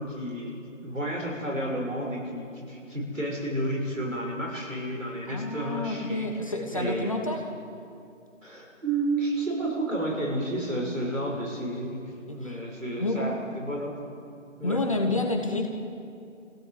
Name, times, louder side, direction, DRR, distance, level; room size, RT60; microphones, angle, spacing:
voice 1, 0.0-7.1 8.4-14.2 14.6-15.2, right 1 dB, 75° right, -2 dB, 6.8 m, -31 dB
voice 2, 5.3-7.5 12.3-12.6 13.0-13.3 14.6-15.7, left 2 dB, 25° left, 3 dB, 1.3 m, -29 dB
24.0 x 16.5 x 7.9 m, 2.5 s
figure-of-eight pair, 160°, 38 cm